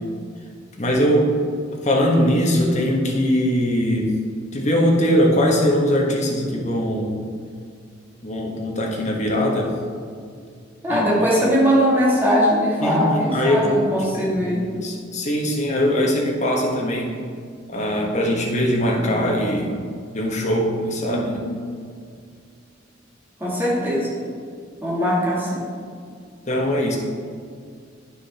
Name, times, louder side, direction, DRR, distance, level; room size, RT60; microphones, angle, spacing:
voice 1, 0.8-1.4 1.8-4.1 4.5-7.2 8.2-9.7 10.9-11.0 12.8-13.9 14.1-14.3 14.7-17.1 17.7-19.8 20.1-21.5 26.5-27.0, equal, 40° left, -1 dB, 1.4 m, -21 dB
voice 2, 10.8-14.7 23.4-24.1 24.8-25.6, equal, 10° right, -7 dB, 2.4 m, -20 dB
9.5 x 6.3 x 4.3 m, 2.1 s
head